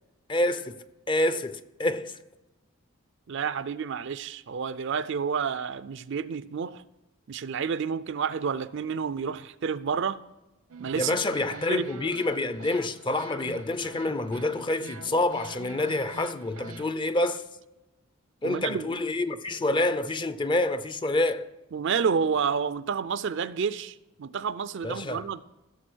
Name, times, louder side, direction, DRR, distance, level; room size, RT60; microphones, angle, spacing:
voice 1, 0.3-2.2 11.0-17.4 18.4-21.5 24.8-25.3, left 2 dB, 20° left, 0.5 m, -27 dB
voice 2, 3.3-6.8 7.3-10.2 10.8-11.8 18.4-18.9 21.7-25.4, right 6 dB, 55° right, 0.4 m, -30 dB
sound 1, 10.7-16.9, right 4 dB, 85° right, 0.9 m, -45 dB
15.5 x 6.9 x 6.2 m
head